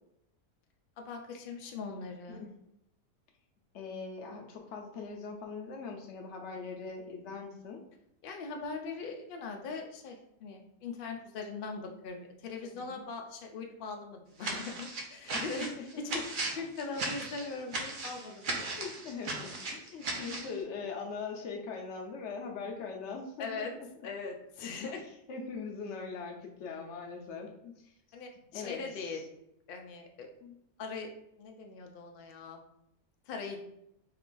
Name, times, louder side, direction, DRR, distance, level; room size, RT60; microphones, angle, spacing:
voice 1, 1.0-2.4 8.2-15.7 16.0-16.2 16.5-18.7 23.4-23.7 24.0-25.0 28.1-29.2 29.7-30.3 30.8-31.1 31.4-32.6 33.3-33.6, left 4 dB, 80° left, 3 dB, 0.4 m, -40 dB
voice 2, 3.7-7.8 12.7-13.0 15.3-16.2 18.7-23.9 24.6-24.9 25.3-27.9 28.5-29.2 30.4-30.6, left 5 dB, 60° left, 2 dB, 0.8 m, -41 dB
sound 1, 14.4-20.5, right 2 dB, 55° right, 0.5 m, -37 dB
3.2 x 2.4 x 3.7 m, 0.79 s
omnidirectional pair, 1.5 m